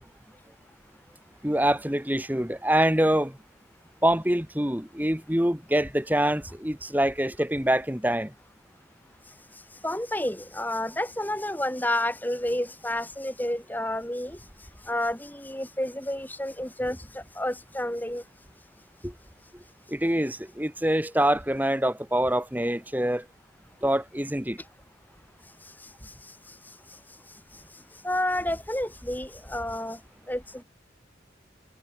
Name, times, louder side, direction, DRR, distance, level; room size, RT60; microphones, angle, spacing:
voice 1, 1.4-3.4 4.0-8.3 19.0-19.1 19.9-23.3 23.8-24.6, right 1 dB, 10° right, 2.0 m, -25 dB
voice 2, 9.8-14.4 14.9-18.2 28.0-30.0 30.3-30.6, left 1 dB, 10° left, 5.4 m, -30 dB
head